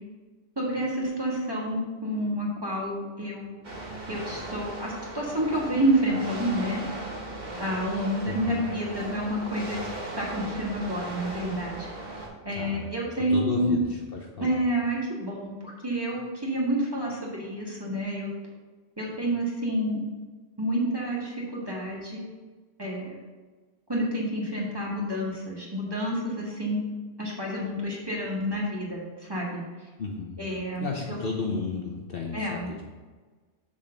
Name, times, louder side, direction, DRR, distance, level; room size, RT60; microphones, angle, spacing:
voice 1, 0.6-3.5 4.1-6.8 7.6-9.8 10.2-11.9 12.5-13.8 14.4-18.3 19.0-20.0 20.6-22.2 22.8-23.2 23.9-26.8 27.2-29.0 29.3-29.6 30.4-31.2 32.3-32.7, right 1 dB, 20° right, -4 dB, 1.7 m, -29 dB
sound 1, 3.6-12.3, right 2 dB, 40° right, 1.5 m, -37 dB
voice 2, 8.2-8.6 12.5-12.9 13.3-14.5 30.0-30.4 30.8-32.8, left 4 dB, 55° left, 0 dB, 1.0 m, -33 dB
6.9 x 4.1 x 6.6 m, 1.3 s
omnidirectional pair, 1.2 m